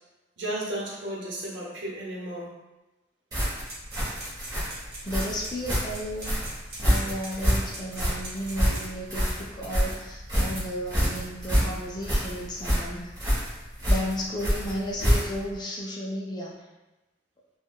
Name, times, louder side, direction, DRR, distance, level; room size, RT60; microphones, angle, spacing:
voice 1, 0.4-2.5, right 1 dB, 80° right, -4 dB, 0.8 m, -34 dB
sound 1, 3.3-15.5, equal, 20° right, 1.0 m, -27 dB
sound 2, 3.6-9.0, right 2 dB, 55° right, 1.0 m, -42 dB
voice 2, 5.0-6.3 6.8-13.2 13.9-16.6, equal, 20° left, -3 dB, 0.4 m, -34 dB
3.6 x 2.2 x 2.3 m, 1.1 s
head